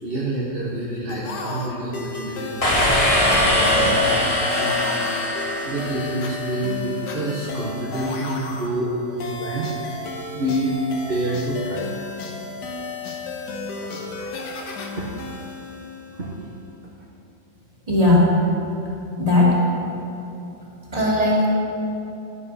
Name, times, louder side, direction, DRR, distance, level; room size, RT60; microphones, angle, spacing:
voice 1, 0.0-2.6 2.8-3.0 3.3-5.0 5.6-12.1 13.7-15.3 16.1-16.5, right 1 dB, 35° right, -5 dB, 1.1 m, -28 dB
sound 1, 1.1-16.6, left 3 dB, 65° left, 1.6 m, -33 dB
sound 2, 2.6-6.4, left 1 dB, 20° left, 1.2 m, -21 dB
voice 2, 17.9-18.3 19.2-19.6 20.9-21.5, left 2 dB, 20° right, -5 dB, 2.3 m, -17 dB
11.0 x 10.0 x 4.1 m, 3.0 s
omnidirectional pair, 2.0 m